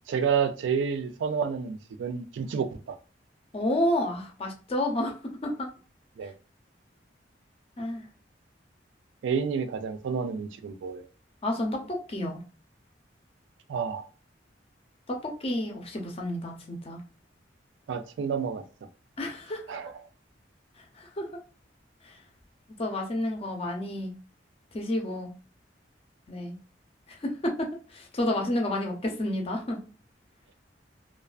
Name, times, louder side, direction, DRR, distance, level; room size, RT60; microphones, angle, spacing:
voice 1, 0.1-3.0 6.2-6.3 9.2-11.1 13.7-14.1 17.9-18.6 19.7-20.0, right 6 dB, 80° right, 0.3 m, -29 dB
voice 2, 3.5-5.1 5.4-5.7 7.8-8.1 11.4-12.4 15.1-17.0 19.2-19.8 21.0-21.3 22.8-24.1 24.7-25.3 26.3-26.6 27.1-29.8, left 1 dB, 35° left, 0.6 m, -30 dB
2.3 x 2.3 x 2.3 m
head